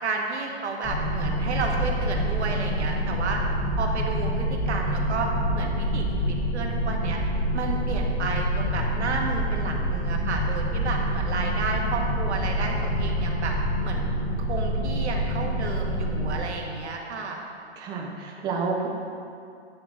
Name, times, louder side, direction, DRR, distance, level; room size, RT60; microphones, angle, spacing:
voice 1, 0.0-3.4 3.8-7.2 7.5-13.5 13.8-14.1 14.5-17.4, right 4 dB, 75° right, 1 dB, 1.4 m, -31 dB
sound 1, 0.8-16.4, equal, 20° left, 1.7 m, -27 dB
voice 2, 17.8-18.9, right 4 dB, 10° right, 0 dB, 0.5 m, -29 dB
9.7 x 4.0 x 4.8 m, 2.5 s
hypercardioid pair, 140°, 34 cm